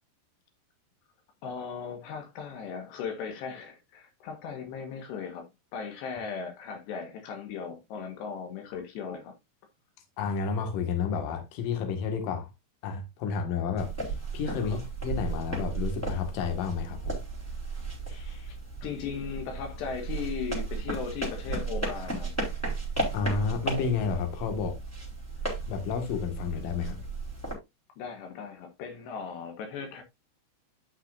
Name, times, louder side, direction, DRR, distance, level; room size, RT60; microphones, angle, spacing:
voice 1, 1.4-5.5 5.7-9.3 14.6-14.8 18.1-22.4 28.0-30.0, left 6 dB, 80° left, 3.5 m, -37 dB
voice 2, 10.2-12.5 12.8-17.2 23.1-24.8 25.7-27.0, left 5 dB, 60° left, 3.1 m, -31 dB
sound 1, 13.8-27.5, right 3 dB, 5° left, 3.3 m, -34 dB
12.0 x 5.8 x 2.5 m
omnidirectional pair, 5.0 m